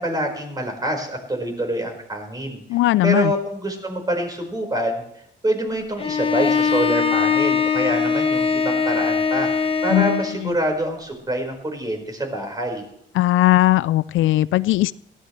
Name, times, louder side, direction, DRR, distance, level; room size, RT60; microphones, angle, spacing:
voice 1, 0.0-2.6 3.0-5.0 5.4-12.8, right 1 dB, 20° right, 1 dB, 5.0 m, -26 dB
voice 2, 2.7-3.3 9.9-10.2 13.2-14.9, left 16 dB, 80° left, 17 dB, 0.4 m, -18 dB
Bowed string instrument, 6.0-10.4, left 5 dB, 25° left, 1.2 m, -21 dB
18.0 x 15.0 x 3.3 m, 0.78 s
cardioid pair, 90°, 20 cm